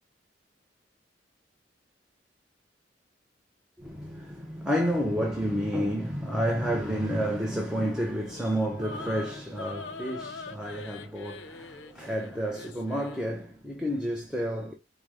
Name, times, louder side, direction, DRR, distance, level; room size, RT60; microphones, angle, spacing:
voice 1, 3.8-14.7, equal, 5° right, 0.6 m, -30 dB
sound 1, 8.0-13.3, left 3 dB, 75° left, 0.5 m, -43 dB
5.0 x 2.1 x 4.6 m
head